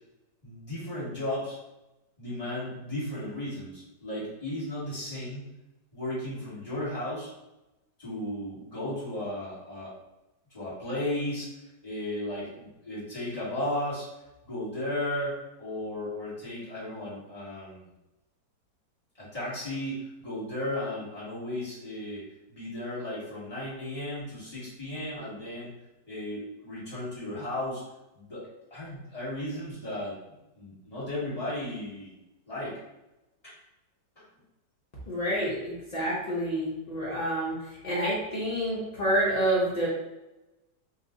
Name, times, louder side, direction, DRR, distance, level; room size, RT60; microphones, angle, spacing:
voice 1, 0.4-1.6 2.2-5.5 5.9-7.3 8.0-9.9 10.5-11.5 11.8-14.1 14.4-17.9 19.2-25.7 26.1-27.8 28.1-30.2 30.5-32.1 32.5-32.8 33.4-33.5 34.1-34.2, left 1 dB, 25° left, -9 dB, 1.4 m, -35 dB
voice 2, 35.1-37.6 37.8-39.9, right 1 dB, 70° left, -7 dB, 0.3 m, -28 dB
2.9 x 2.4 x 3.7 m, 0.97 s
omnidirectional pair, 1.9 m